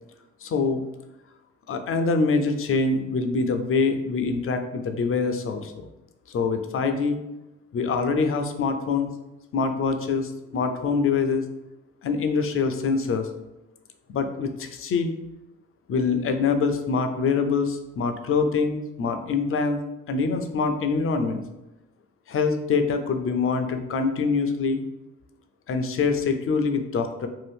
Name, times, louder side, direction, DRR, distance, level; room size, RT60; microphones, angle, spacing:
voice 1, 0.4-0.8 1.7-5.9 6.3-7.2 7.7-9.1 9.5-11.5 12.0-13.3 14.1-15.1 15.9-19.8 20.1-21.4 22.3-24.8 25.7-27.3, left 4 dB, 45° left, 7 dB, 0.5 m, -24 dB
2.7 x 2.5 x 3.4 m, 0.97 s
cardioid pair, 70°, 31 cm